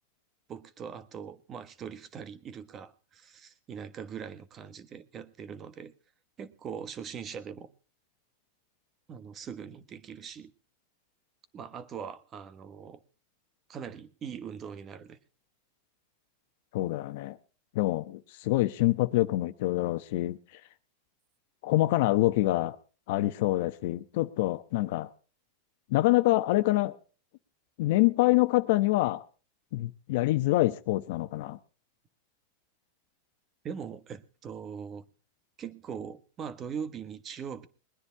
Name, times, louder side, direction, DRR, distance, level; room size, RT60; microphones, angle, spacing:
voice 1, 0.5-5.9 6.4-7.7 9.1-10.5 11.5-13.0 13.7-15.2 33.6-35.1 35.6-37.7, right 7 dB, 30° right, 1.4 m, -41 dB
voice 2, 16.7-17.4 17.7-20.4 21.6-22.8 23.1-25.1 25.9-27.0 27.8-29.2 29.7-31.6, left 17 dB, 65° left, 1.0 m, -26 dB
21.5 x 9.9 x 4.7 m
supercardioid pair, 135°, 0 cm